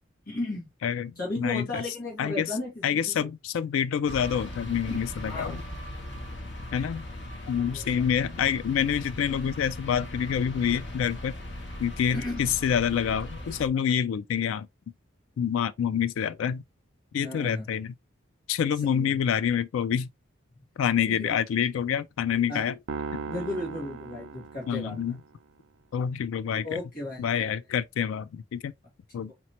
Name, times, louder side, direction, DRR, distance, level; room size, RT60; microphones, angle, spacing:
voice 1, 0.2-0.7 1.1-3.3 4.9-5.6 7.7-7.8 12.1-12.5 17.1-17.7 18.7-19.2 21.1-21.4 22.5-22.6 23.3-25.2 26.6-27.6 29.3-29.4, left 2 dB, 45° left, 1.7 m, -35 dB
voice 2, 0.8-1.8 2.2-2.5 2.8-5.6 6.7-7.0 7.5-11.3 11.8-14.7 15.4-16.6 17.1-17.9 18.5-20.1 20.8-22.8 24.7-25.2 25.9-26.8 27.2-28.7 29.1-29.3, left 8 dB, 90° left, 0.3 m, -27 dB
sound 1, 4.1-13.7, left 1 dB, 60° left, 1.0 m, -39 dB
sound 2, 22.9-25.3, right 5 dB, 85° right, 0.4 m, -37 dB
4.1 x 3.0 x 2.8 m
head